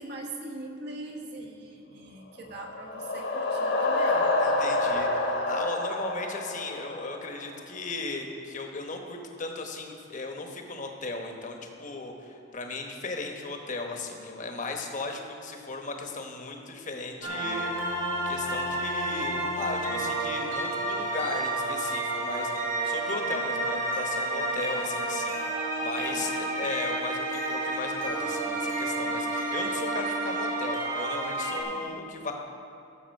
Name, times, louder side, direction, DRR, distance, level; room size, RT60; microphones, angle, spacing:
voice 1, 0.0-5.1 26.1-26.6 31.6-32.1, right 2 dB, 55° right, 1 dB, 1.3 m, -42 dB
sound 1, 2.5-7.4, left 2 dB, 65° left, 1.4 m, -28 dB
voice 2, 4.4-5.1 5.4-17.7 18.3-22.5 22.8-32.3, left 3 dB, 40° left, 3 dB, 1.1 m, -36 dB
sound 2, 17.2-31.6, right 2 dB, 85° right, 2.2 m, -30 dB
13.0 x 7.1 x 5.4 m, 2.8 s
head